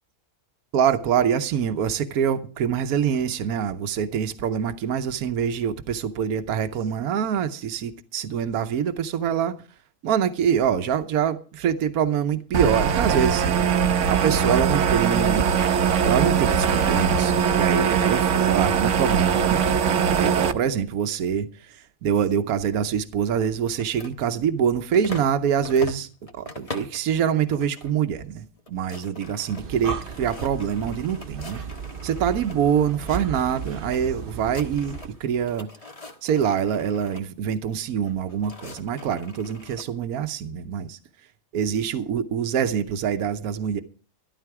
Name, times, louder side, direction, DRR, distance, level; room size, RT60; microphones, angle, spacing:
voice 1, 0.7-9.5 10.0-13.4 14.1-15.4 16.0-26.1 26.3-31.6 32.0-35.7 36.2-41.0 41.5-43.8, right 8 dB, 80° right, 1.3 m, -25 dB
sound 1, 12.5-20.5, right 7 dB, 60° right, 1.1 m, -21 dB
sound 2, 23.7-25.4 25.6-27.0 27.5-27.9 28.2-28.3 28.6-32.6 32.9-34.0 34.3-35.2 35.5-37.2 38.0-39.9, left 2 dB, 25° left, 1.4 m, -42 dB
Breathing, 29.4-35.2, right 6 dB, 45° right, 1.0 m, -35 dB
13.0 x 12.0 x 4.8 m
omnidirectional pair, 1.5 m